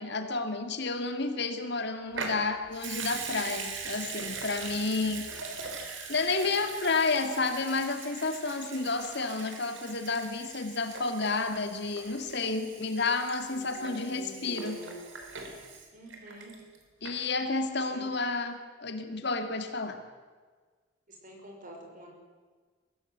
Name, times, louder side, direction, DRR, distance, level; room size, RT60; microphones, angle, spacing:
voice 1, 0.0-5.2 6.1-14.8 17.0-20.0, left 3 dB, 60° left, 7 dB, 2.1 m, -31 dB
Water tap faucet / Sink (filling or washing) / Liquid, 2.1-16.8 17.0-17.1, right 4 dB, 80° right, 3.8 m, -41 dB
voice 2, 13.4-15.0 15.9-16.7 17.7-18.1 21.1-22.1, right 1 dB, 45° right, 1 dB, 5.4 m, -46 dB
22.5 x 16.0 x 8.1 m, 1.5 s
head